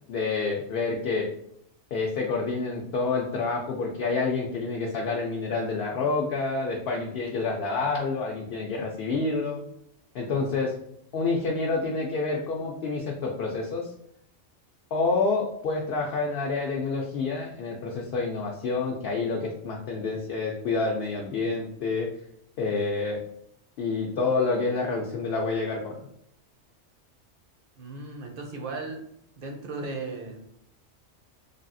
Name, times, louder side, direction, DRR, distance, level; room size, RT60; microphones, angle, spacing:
voice 1, 0.1-1.2 1.9-9.6 10.1-10.7 11.1-13.9 14.9-22.1 22.6-23.2 23.8-26.1, left 3 dB, 65° left, -1 dB, 0.7 m, -28 dB
voice 2, 27.8-29.0 29.4-30.4, right 3 dB, 55° right, 2 dB, 0.8 m, -36 dB
3.3 x 2.3 x 2.6 m, 0.73 s
omnidirectional pair, 1.2 m